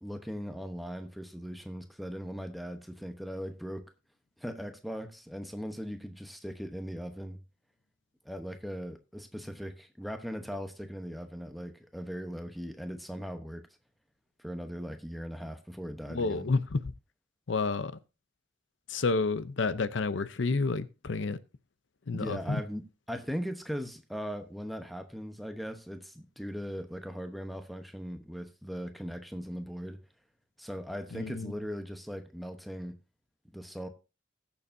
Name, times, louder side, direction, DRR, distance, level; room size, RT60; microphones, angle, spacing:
voice 1, 0.0-3.8 4.4-7.4 8.2-13.6 14.4-16.5 22.1-30.0 30.6-33.0 33.4-33.9, equal, ahead, 0.9 m, -39 dB
voice 2, 16.1-16.9 17.5-18.0 18.9-21.4 22.1-22.6 31.1-31.5, left 3 dB, 70° left, 0.6 m, -30 dB
20.5 x 7.0 x 2.7 m
head